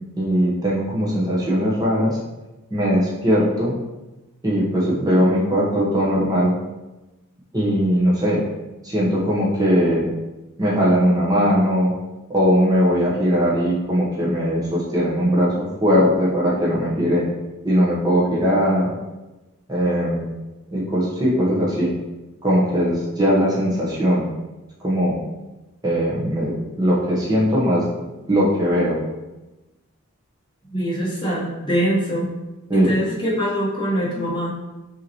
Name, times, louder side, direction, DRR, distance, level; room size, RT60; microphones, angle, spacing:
voice 1, 0.2-2.2 2.7-3.8 4.4-6.5 7.5-8.4 8.8-10.1 10.6-11.9 12.3-17.2 17.6-18.9 19.7-20.3 20.7-21.9 22.4-24.2 24.8-25.2 25.8-27.8 28.3-29.0 32.7-32.9, equal, 15° right, -6 dB, 1.0 m, -19 dB
voice 2, 30.7-32.3 32.7-34.5, equal, 20° left, -7 dB, 1.2 m, -23 dB
5.4 x 2.9 x 3.0 m, 1.1 s
head